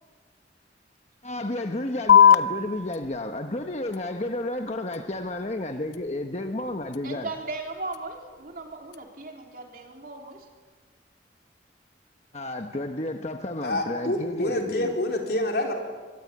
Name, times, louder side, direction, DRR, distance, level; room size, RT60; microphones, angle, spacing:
voice 1, 1.2-7.3 12.3-14.9, left 1 dB, 35° left, 6 dB, 1.1 m, -31 dB
sound 1, 2.1-9.1, left 8 dB, 80° left, 0.9 m, -25 dB
voice 2, 7.0-10.5, right 3 dB, 50° right, 2 dB, 3.5 m, -37 dB
voice 3, 13.6-15.7, left 1 dB, 60° left, 2 dB, 4.1 m, -27 dB
24.0 x 22.5 x 8.7 m, 1.5 s
head